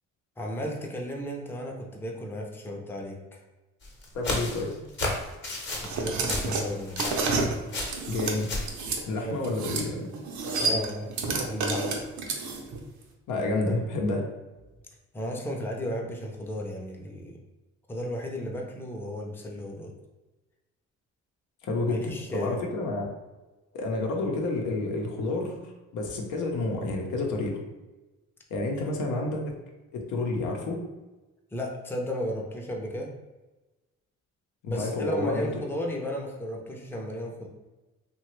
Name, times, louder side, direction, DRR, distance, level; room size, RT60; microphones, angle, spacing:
voice 1, 0.4-3.4 5.8-7.1 9.2-9.5 10.6-11.1 11.4-11.9 15.1-17.4 17.9-19.9 21.9-22.7 31.5-33.1 34.7-37.5, equal, 5° left, 0 dB, 0.5 m, -34 dB
sound 1, 3.8-7.4 7.7-8.8, left 2 dB, 35° left, 0.9 m, -32 dB
voice 2, 4.1-4.7 8.1-8.5 9.1-10.1 10.7-10.8 13.3-14.3 21.6-23.1 23.7-25.5 25.9-27.6 28.5-29.6 29.9-30.8 34.6-35.5, left 2 dB, 80° left, 1 dB, 0.7 m, -29 dB
sound 2, 5.8-9.0 9.4-9.9 10.1-12.8, right 3 dB, 70° right, 0.6 m, -29 dB
2.9 x 2.2 x 3.0 m, 1.1 s
cardioid pair, 90°, 30 cm